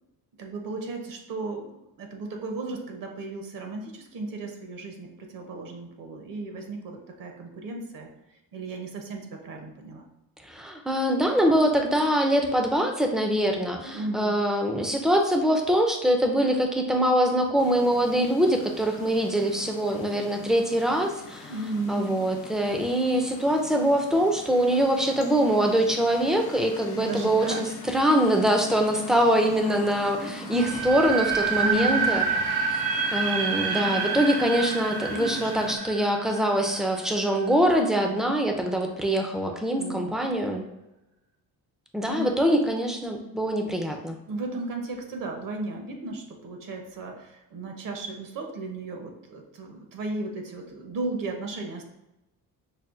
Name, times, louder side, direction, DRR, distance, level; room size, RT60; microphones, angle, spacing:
voice 1, 0.4-1.7 2.0-8.1 8.5-10.1 13.9-14.5 21.5-22.1 26.9-27.6 31.6-32.3 35.1-35.7 39.8-40.2 42.0-42.3 44.3-51.8, right 2 dB, 60° right, 3 dB, 0.8 m, -35 dB
voice 2, 10.4-21.5 21.9-32.2 32.7-32.8 33.1-40.7 41.9-44.2, right 1 dB, ahead, 3 dB, 0.3 m, -24 dB
sound 1, 17.6-35.8, left 4 dB, 90° left, 0.7 m, -42 dB
sound 2, 30.5-37.4, right 5 dB, 90° right, 1.0 m, -28 dB
5.4 x 2.2 x 2.4 m, 0.92 s
cardioid pair, 120°, 37 cm